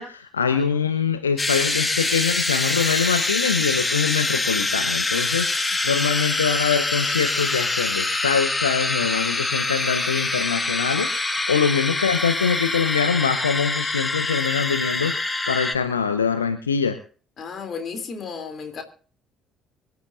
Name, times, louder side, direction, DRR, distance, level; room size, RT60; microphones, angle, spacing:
voice 1, 0.0-17.0, left 6 dB, 85° left, 8 dB, 0.7 m, -24 dB
sound 1, 1.4-15.7, left 2 dB, 20° left, 1.5 m, -25 dB
voice 2, 17.4-18.8, left 5 dB, 45° left, 7 dB, 2.9 m, -33 dB
24.5 x 10.5 x 2.5 m, 0.40 s
figure-of-eight pair, 50°, 0 cm